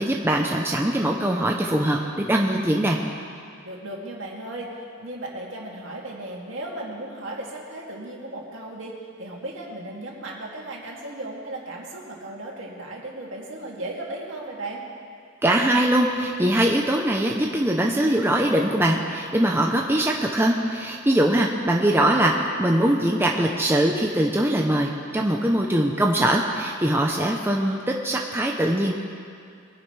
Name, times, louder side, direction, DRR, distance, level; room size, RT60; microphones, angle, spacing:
voice 1, 0.0-3.0 15.4-28.9, right 1 dB, 10° right, 0 dB, 0.7 m, -22 dB
voice 2, 3.6-14.8, right 1 dB, 65° right, -3 dB, 2.6 m, -36 dB
22.5 x 10.5 x 3.4 m, 2.3 s
head